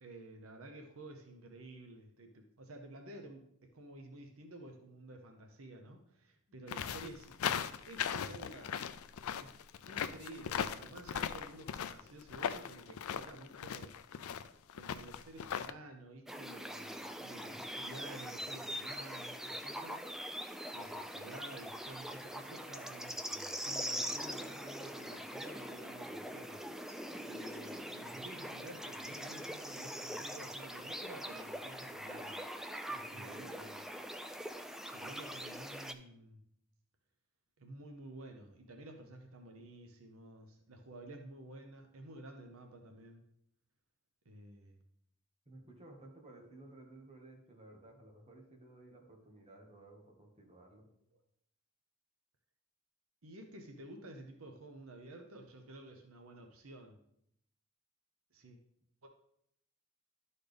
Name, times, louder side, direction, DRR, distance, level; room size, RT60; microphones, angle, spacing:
voice 1, 0.0-3.4 3.7-7.3 7.9-8.7 9.4-9.5 9.9-14.0 14.7-20.1 20.7-27.0 27.3-32.4 33.1-33.8 34.8-36.4 37.6-43.2 44.2-44.8 51.1-51.2 53.2-57.0 58.3-58.6 59.0-59.1, right 2 dB, 75° right, 4 dB, 0.8 m, -52 dB
sound 1, 6.7-15.7, left 8 dB, 80° left, 0.4 m, -38 dB
sound 2, 16.3-35.9, equal, ahead, 0.3 m, -43 dB
voice 2, 32.9-33.6 45.4-50.9, right 2 dB, 30° right, 0 dB, 1.5 m, -55 dB
12.0 x 4.2 x 3.4 m, 0.73 s
head